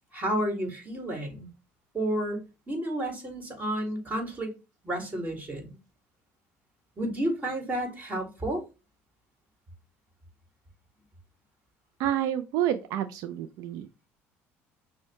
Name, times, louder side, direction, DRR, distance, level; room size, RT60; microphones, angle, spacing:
voice 1, 0.1-1.5 1.9-2.4 2.7-4.5 4.8-5.7 7.0-8.6, right 1 dB, 25° right, 1.9 m, -31 dB
voice 2, 12.0-14.1, right 11 dB, 70° right, 0.4 m, -29 dB
6.1 x 2.1 x 3.1 m
supercardioid pair, 85°, 6 cm